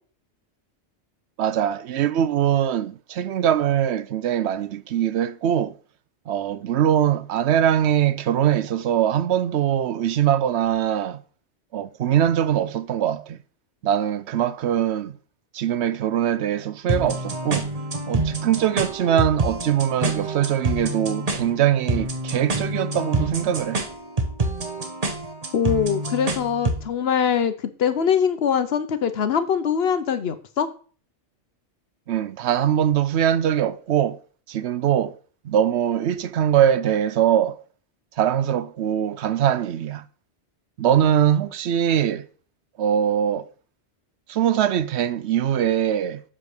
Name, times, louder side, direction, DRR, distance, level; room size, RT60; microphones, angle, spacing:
voice 1, 1.4-5.8 6.3-11.2 11.7-13.4 13.8-15.1 15.5-17.7 18.1-23.8 32.1-34.2 34.5-35.2 35.4-37.6 38.2-40.0 40.8-42.3 42.8-43.5 44.3-46.2, right 10 dB, 75° right, 0.8 m, -22 dB
sound 1, 16.9-26.9, right 2 dB, 35° right, 1.1 m, -27 dB
voice 2, 25.5-27.5 27.8-30.7, left 7 dB, 65° left, 1.0 m, -22 dB
7.5 x 3.8 x 6.5 m
omnidirectional pair, 1.2 m